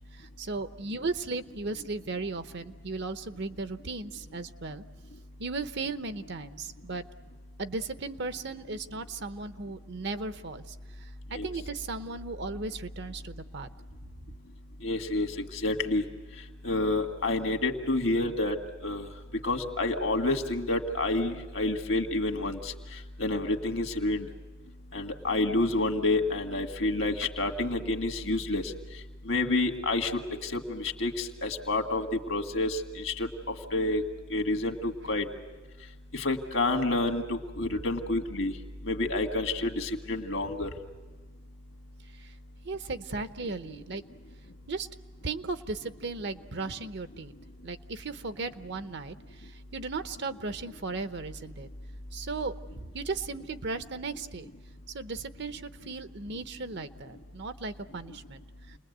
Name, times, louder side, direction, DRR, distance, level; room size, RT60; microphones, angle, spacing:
voice 1, 0.0-4.8 5.4-7.1 7.6-13.7 42.1-42.3 42.6-44.0 44.7-44.9 45.2-47.3 47.6-51.7 52.1-52.5 52.9-54.5 54.9-58.8, right 3 dB, 60° right, 11 dB, 0.9 m, -36 dB
voice 2, 14.8-15.3 15.6-16.0 16.6-18.6 18.8-19.1 19.4-22.7 23.2-24.2 24.9-28.6 29.3-34.0 34.3-35.2 36.1-38.5 38.9-40.7, left 2 dB, 75° left, 5 dB, 1.8 m, -29 dB
29.5 x 20.5 x 8.0 m, 1.3 s
head